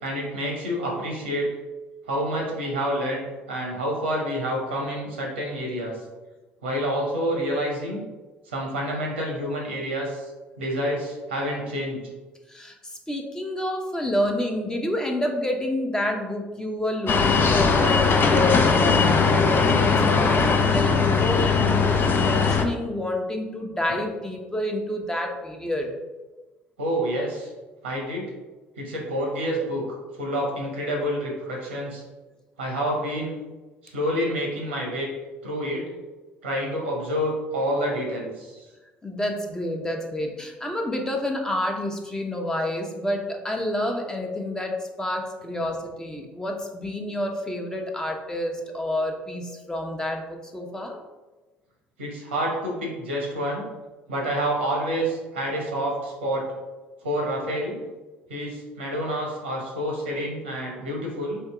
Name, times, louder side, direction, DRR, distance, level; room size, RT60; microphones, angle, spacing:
voice 1, 0.0-1.5 2.1-6.0 6.6-8.0 8.5-10.3 10.6-12.0 26.8-27.5 27.8-28.2 28.8-32.0 32.6-33.3 33.8-35.1 35.4-35.8 36.4-38.6 52.0-53.6 54.1-56.4 57.0-57.8 58.3-61.4, equal, 90° right, -2 dB, 1.3 m, -28 dB
voice 2, 13.1-21.9 22.2-25.9 39.0-51.0, left 1 dB, 10° left, 2 dB, 0.8 m, -28 dB
sound 1, 17.1-22.6, left 5 dB, 35° left, 0.6 m, -20 dB
3.6 x 2.8 x 4.7 m, 1.2 s
hypercardioid pair, 60°, 6 cm